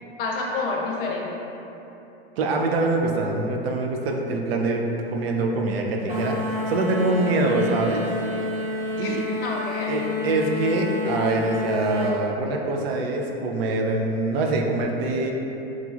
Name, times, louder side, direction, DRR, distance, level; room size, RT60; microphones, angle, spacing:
voice 1, 0.2-1.3 9.0-9.9, left 3 dB, 65° left, -2 dB, 0.6 m, -28 dB
voice 2, 2.4-8.1 9.0-9.2 9.9-15.3, right 2 dB, 70° right, 1 dB, 0.5 m, -24 dB
sound 1, 6.1-12.2, left 3 dB, 25° right, 1.0 m, -29 dB
3.0 x 2.4 x 2.4 m, 3.0 s
hypercardioid pair, 100°, 31 cm